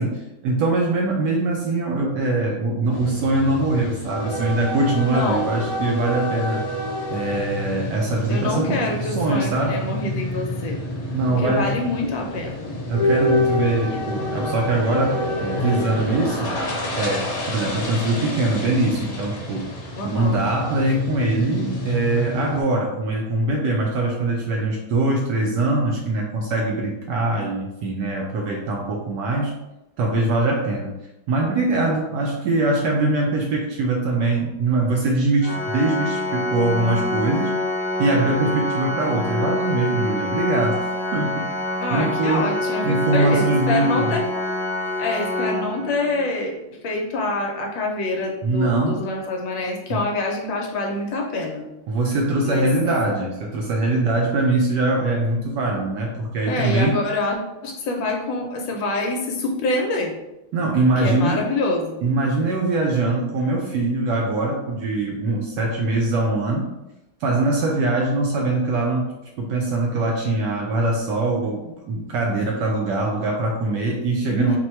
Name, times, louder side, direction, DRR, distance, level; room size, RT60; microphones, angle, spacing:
voice 1, 0.0-6.6 7.1-9.9 11.1-11.8 12.9-16.5 16.9-19.7 20.0-29.6 30.0-30.9 31.3-37.5 38.0-41.6 41.9-42.5 42.8-44.2 48.4-49.0 49.9-50.0 51.9-57.0 60.5-61.4 62.0-66.7 67.2-74.6, right 2 dB, 75° right, 0 dB, 1.0 m, -22 dB
sound 1, 2.9-22.6, left 1 dB, 50° left, 1.2 m, -28 dB
voice 2, 5.1-5.5 8.3-10.8 11.3-12.8 19.9-20.4 41.8-44.2 45.0-46.5 46.8-51.6 52.4-52.7 56.5-60.1 61.0-62.0 74.3-74.6, left 2 dB, 75° left, 1 dB, 1.3 m, -26 dB
Organ, 35.4-46.3, left 1 dB, 30° left, 1.4 m, -26 dB
4.3 x 2.2 x 4.3 m, 0.94 s
omnidirectional pair, 2.3 m